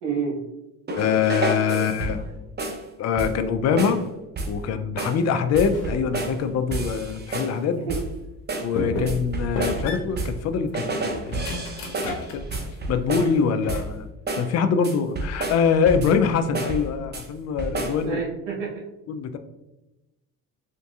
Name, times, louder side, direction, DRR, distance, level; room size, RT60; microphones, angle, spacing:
voice 1, 0.0-0.4 1.7-1.8 2.3-2.4 7.9-8.0 8.7-9.0 12.5-12.6 18.0-18.8, right 6 dB, 70° right, -3 dB, 1.3 m, -29 dB
voice 2, 0.9-2.2 3.0-4.0 4.5-7.8 8.6-11.6 12.3-12.4 12.9-14.1 14.4-18.2 19.1-19.4, left 6 dB, 40° left, 9 dB, 0.4 m, -24 dB
sound 1, 0.9-2.3 2.6-2.9 3.2-3.5 3.8-4.0 4.4-4.6 5.0-5.2 5.5-6.4 6.7-7.6 7.9-8.2 8.5-10.5 10.7-13.4 13.7-14.0 14.3-14.5 14.8-16.2 16.5-17.3 17.6-18.0, right 2 dB, 25° right, 0.6 m, -30 dB
sound 2, 5.5-6.0 6.5-7.5 8.1-8.2 8.8-9.3 9.6-12.8 13.1-14.1, left 2 dB, 80° left, 0.8 m, -34 dB
3.6 x 2.6 x 2.3 m, 0.97 s
hypercardioid pair, 60°, 43 cm